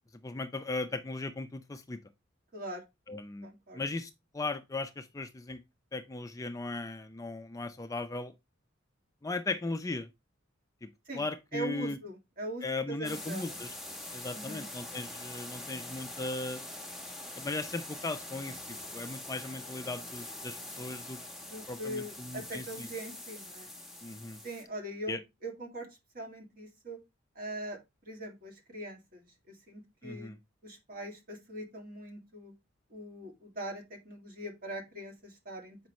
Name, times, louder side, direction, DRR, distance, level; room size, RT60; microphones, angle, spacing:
voice 1, 0.2-2.0 3.1-3.5 3.7-5.6 5.9-8.3 9.2-10.1 10.8-12.0 12.6-13.7 14.1-16.6 17.4-21.2 21.7-22.9 24.0-24.4 25.1-25.2 30.0-30.4, left 3 dB, 15° left, 0.4 m, -37 dB
voice 2, 2.5-2.8 3.4-3.8 11.1-11.3 11.5-13.5 14.3-14.7 21.5-23.7 24.4-25.9 26.1-27.0 27.4-30.3 30.6-32.5 32.9-35.8, right 1 dB, 45° right, 2.1 m, -42 dB
sound 1, 13.0-24.6, left 1 dB, ahead, 1.0 m, -44 dB
7.5 x 5.1 x 3.1 m
head